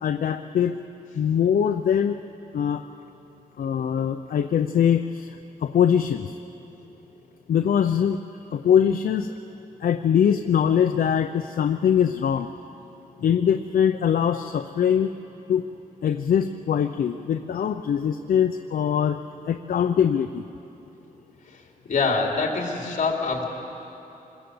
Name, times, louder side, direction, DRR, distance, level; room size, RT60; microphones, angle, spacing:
voice 1, 0.0-0.7 1.1-2.2 2.5-2.8 3.6-5.3 5.6-6.3 7.5-8.2 8.5-9.3 9.8-12.5 13.2-15.1 15.5-15.7 16.0-19.2 19.5-20.4, left 8 dB, 75° left, 7 dB, 0.7 m, -22 dB
voice 2, 21.9-23.4, left 4 dB, 60° left, 0 dB, 3.6 m, -24 dB
26.0 x 21.5 x 7.9 m, 3.0 s
wide cardioid pair, 150°, 15 cm